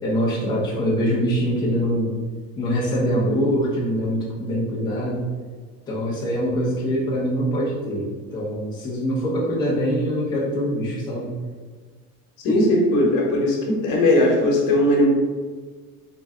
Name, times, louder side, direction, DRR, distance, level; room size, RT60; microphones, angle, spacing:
voice 1, 0.0-2.1 2.6-5.2 5.9-8.1 8.3-11.3, equal, 10° left, -8 dB, 0.8 m, -23 dB
voice 2, 12.4-15.1, left 1 dB, 65° left, -2 dB, 1.2 m, -18 dB
3.9 x 3.1 x 3.6 m, 1.5 s
cardioid pair, 180°, 35 cm